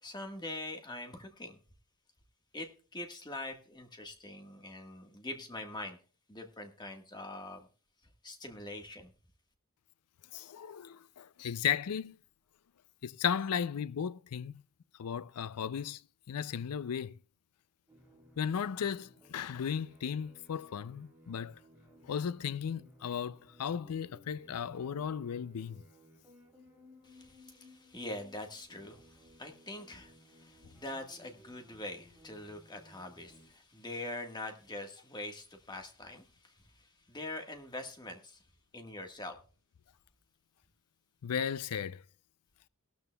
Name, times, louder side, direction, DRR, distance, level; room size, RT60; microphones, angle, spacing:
voice 1, 0.0-1.6 2.5-6.0 6.3-7.7 8.2-9.1 27.0-38.4 38.7-39.4, left 2 dB, 20° left, 1.4 m, -44 dB
voice 2, 10.3-12.2 13.0-14.6 15.0-16.0 16.3-17.2 18.4-21.6 22.0-25.8 41.2-42.0, left 8 dB, 85° left, 0.4 m, -35 dB
sound 1, 17.9-33.5, equal, 10° right, 3.2 m, -60 dB
16.5 x 12.5 x 2.3 m
head